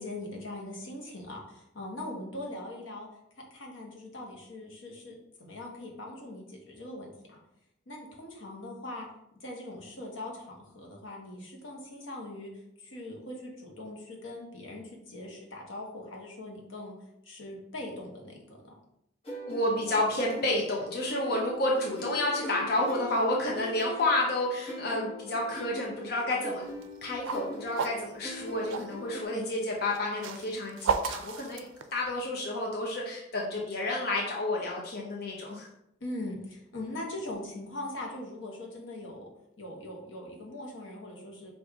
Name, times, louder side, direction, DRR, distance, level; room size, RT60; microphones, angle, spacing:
voice 1, 0.0-3.1 3.5-7.4 7.9-9.1 9.3-17.0 17.2-18.8 36.0-39.3 39.6-41.5, left 1 dB, 85° left, -1 dB, 1.1 m, -41 dB
sound 1, 19.2-29.2, equal, 35° left, 0.9 m, -42 dB
voice 2, 19.5-26.7 27.0-31.6 31.9-35.7, left 1 dB, 55° left, -2 dB, 0.6 m, -30 dB
sound 2, 26.7-28.9 29.8-32.2, right 5 dB, 90° right, 0.4 m, -33 dB
5.0 x 2.6 x 3.5 m, 0.80 s
head